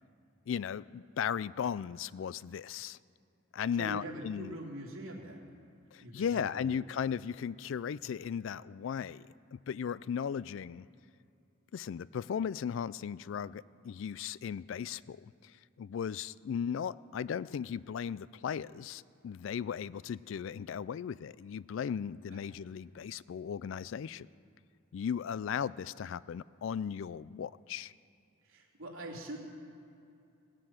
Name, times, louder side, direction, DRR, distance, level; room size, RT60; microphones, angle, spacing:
voice 1, 0.5-3.0 3.5-4.6 5.9-10.9 11.7-24.3 24.9-27.9, left 7 dB, 65° left, 19 dB, 0.3 m, -36 dB
voice 2, 3.8-5.4 6.0-6.8 22.3-22.4 28.4-29.4, right 1 dB, 75° right, -3 dB, 3.0 m, -43 dB
18.5 x 7.6 x 8.9 m, 2.6 s
head